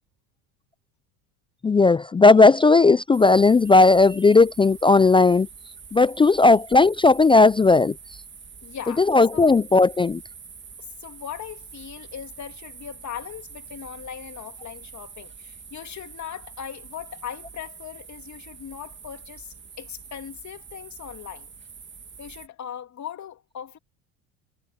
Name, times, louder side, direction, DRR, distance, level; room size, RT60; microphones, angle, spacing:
voice 1, 1.6-5.5 5.9-7.9 9.0-10.2, left 3 dB, 15° left, 0.4 m, -16 dB
sound 1, 3.1-22.5, right 6 dB, 25° right, 2.4 m, -45 dB
voice 2, 8.6-9.1 9.3-9.5 10.8-21.5 22.2-23.8, left 9 dB, 40° left, 2.7 m, -39 dB
supercardioid pair, 85°, 41 cm